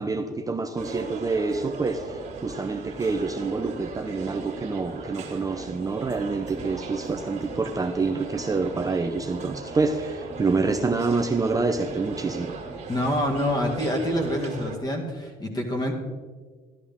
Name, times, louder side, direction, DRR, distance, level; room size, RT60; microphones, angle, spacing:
voice 1, 0.0-12.5, right 3 dB, 20° right, 4 dB, 0.6 m, -27 dB
sound 1, 0.7-14.8, right 4 dB, 45° right, 2.3 m, -38 dB
voice 2, 12.9-15.9, equal, 25° left, 2 dB, 2.1 m, -26 dB
13.0 x 11.5 x 3.7 m, 1.5 s
cardioid pair, 110°, 17 cm